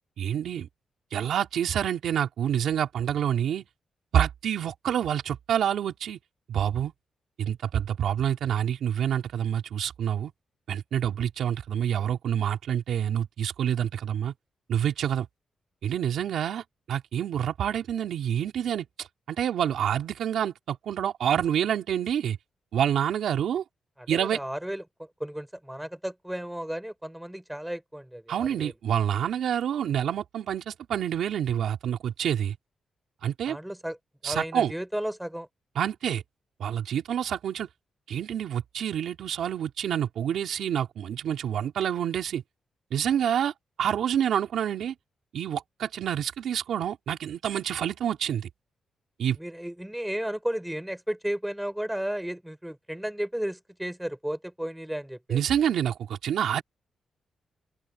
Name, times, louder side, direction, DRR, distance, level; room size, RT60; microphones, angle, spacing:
voice 1, 0.2-0.7 1.1-3.7 4.1-6.2 6.5-6.9 7.4-10.3 10.7-14.3 14.7-15.3 15.8-22.4 22.7-23.6 24.1-24.4 28.3-32.6 33.2-33.6 34.2-34.7 35.8-36.2 36.6-37.7 38.1-42.4 42.9-44.9 45.3-48.5 49.2-49.4 55.3-56.6, right 9 dB, 75° right, 3.8 m, -27 dB
voice 2, 24.0-28.7 33.5-34.0 34.2-35.5 49.4-55.4, right 1 dB, 5° right, 4.6 m, -34 dB
open air
wide cardioid pair, 155°, 0 cm